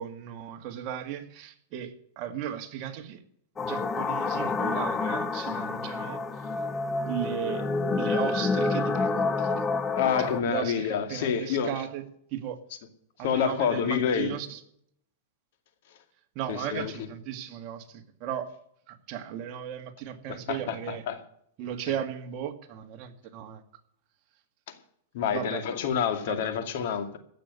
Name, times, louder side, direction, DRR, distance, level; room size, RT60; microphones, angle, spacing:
voice 1, 0.0-3.2 3.6-6.5 7.1-7.7 7.9-9.7 10.2-12.0 12.3-12.6 13.2-14.6 16.4-18.5 18.9-21.0 21.6-23.6 25.3-25.6 26.3-26.5, right 10 dB, 40° right, 1.9 m, -36 dB
sound 1, 3.6-10.4, left 3 dB, 15° left, 0.7 m, -28 dB
voice 2, 9.9-11.8 13.2-14.3 16.5-16.9 20.3-21.2 25.1-27.2, left 7 dB, 60° left, 2.3 m, -28 dB
16.0 x 6.8 x 9.5 m
supercardioid pair, 150°, 0 cm